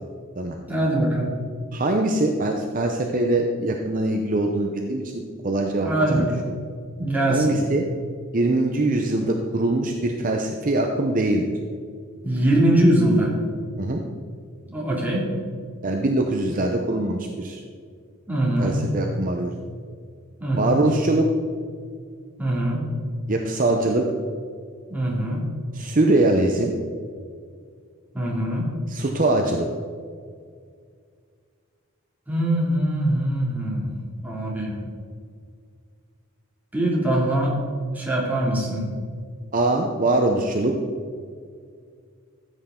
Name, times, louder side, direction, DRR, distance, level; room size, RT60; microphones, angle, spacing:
voice 1, 0.7-1.3 5.8-6.4 7.0-7.6 12.2-13.3 14.7-15.3 18.3-18.7 20.4-20.8 22.4-22.8 24.9-25.4 28.1-28.7 32.3-33.8 34.2-34.7 36.7-37.5 37.9-38.9, right 1 dB, 10° right, -5 dB, 2.6 m, -22 dB
voice 2, 1.7-6.3 7.3-7.9 8.3-11.4 13.8-14.0 15.8-17.6 18.6-19.5 20.5-21.3 23.3-24.1 25.7-26.7 28.9-29.7 39.5-40.7, right 2 dB, 40° right, 3 dB, 0.7 m, -22 dB
14.5 x 8.1 x 3.8 m, 2.1 s
head